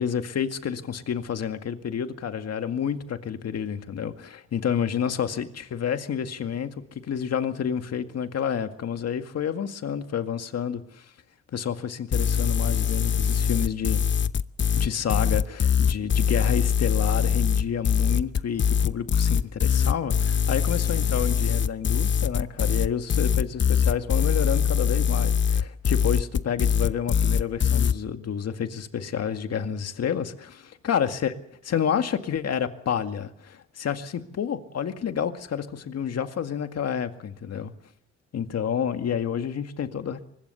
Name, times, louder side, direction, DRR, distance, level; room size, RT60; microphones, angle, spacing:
voice 1, 0.0-11.1 11.5-14.0 14.7-31.3 31.6-37.7 38.3-40.2, left 8 dB, 55° left, 2.0 m, -29 dB
sound 1, 12.1-27.9, left 7 dB, 40° left, 0.8 m, -22 dB
24.0 x 21.0 x 7.0 m
cardioid pair, 90°, 30 cm